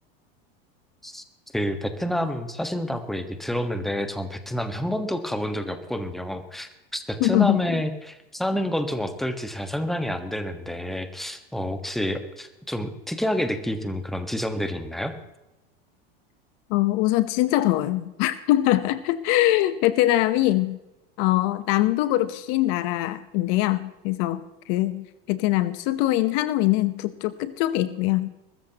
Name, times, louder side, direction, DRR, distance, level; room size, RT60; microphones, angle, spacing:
voice 1, 1.5-15.1, equal, ahead, 7 dB, 1.4 m, -28 dB
voice 2, 7.2-7.8 16.7-20.8 21.2-28.3, left 15 dB, 55° left, 13 dB, 1.0 m, -23 dB
22.0 x 14.0 x 3.0 m, 0.97 s
supercardioid pair, 120°, 30 cm